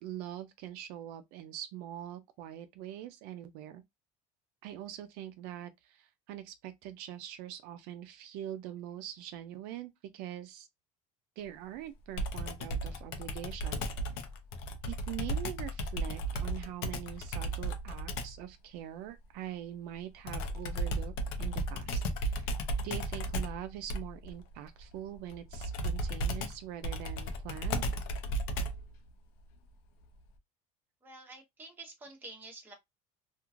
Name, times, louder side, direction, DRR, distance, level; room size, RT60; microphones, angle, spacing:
voice 1, 0.0-3.8 4.6-10.7 11.4-13.9 14.8-21.1 21.4-22.6 22.8-27.9, right 11 dB, 65° right, 0.4 m, -43 dB
Computer keyboard, 12.2-18.4 20.3-28.9, right 1 dB, 80° left, 0.7 m, -35 dB
voice 2, 31.0-32.7, right 2 dB, 10° right, 0.9 m, -49 dB
3.0 x 2.4 x 2.4 m
cardioid pair, 170°, 17 cm